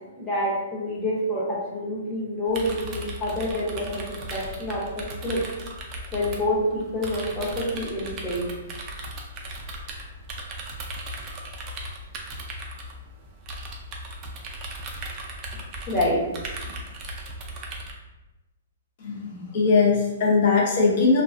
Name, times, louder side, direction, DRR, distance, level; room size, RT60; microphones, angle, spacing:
voice 1, 0.2-4.0 4.3-5.4 6.1-8.5 15.9-16.2, left 1 dB, 15° left, -6 dB, 0.8 m, -27 dB
sound 1, 2.5-17.9, right 1 dB, 30° right, 0.4 m, -37 dB
voice 2, 19.0-21.2, left 4 dB, 50° left, -2 dB, 0.7 m, -20 dB
2.3 x 2.2 x 2.4 m, 1.1 s
hypercardioid pair, 145°, 0 cm